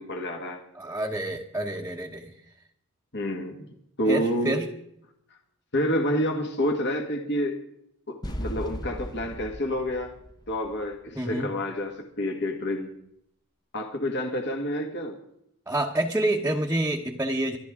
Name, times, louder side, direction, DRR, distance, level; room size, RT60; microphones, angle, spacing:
voice 1, 0.0-0.6 3.1-3.7 4.0-4.6 5.7-7.6 8.1-10.1 10.5-12.9 13.7-15.2, equal, 55° left, 3 dB, 1.8 m, -28 dB
voice 2, 0.7-2.3 4.1-4.7 11.1-11.5 15.7-17.6, right 1 dB, 10° right, -1 dB, 1.1 m, -28 dB
sound 1, 8.2-11.2, equal, 20° left, 0.9 m, -37 dB
25.0 x 12.0 x 3.7 m, 0.74 s
head